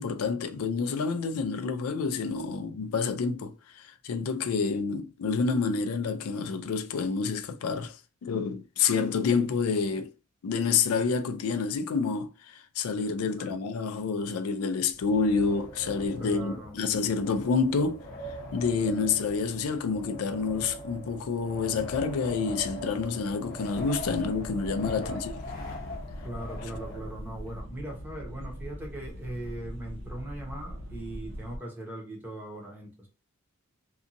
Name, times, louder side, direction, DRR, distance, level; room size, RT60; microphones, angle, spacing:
voice 1, 0.0-8.0 8.2-10.1 10.4-18.0 18.5-25.3, left 5 dB, 90° left, 0.4 m, -28 dB
voice 2, 13.3-13.6 16.2-16.8 24.9-25.2 26.2-33.1, right 1 dB, 10° right, 0.9 m, -40 dB
Wind, 14.9-27.5, left 1 dB, 40° left, 0.8 m, -41 dB
sound 1, 23.7-31.6, equal, 65° right, 0.7 m, -41 dB
2.7 x 2.5 x 2.5 m
head